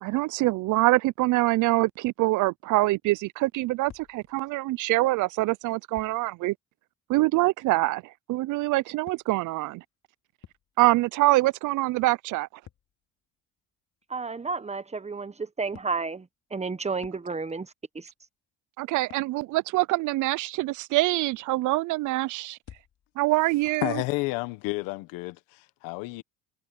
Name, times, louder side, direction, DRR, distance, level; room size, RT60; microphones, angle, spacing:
voice 1, 0.0-6.5 7.1-9.8 10.8-12.5 18.8-22.6 23.2-24.0, right 19 dB, 65° right, 0.6 m, -25 dB
sound 1, 3.9-4.9 5.9-6.3 8.4-11.1 11.4-14.1 15.7-17.7 18.1-18.5 19.1-19.4 22.6-23.3, left 10 dB, 55° left, 2.9 m, -54 dB
voice 2, 14.1-18.1, right 4 dB, 20° right, 1.3 m, -32 dB
voice 3, 23.8-26.2, left 22 dB, 85° left, 1.3 m, -31 dB
supercardioid pair, 85°, 33 cm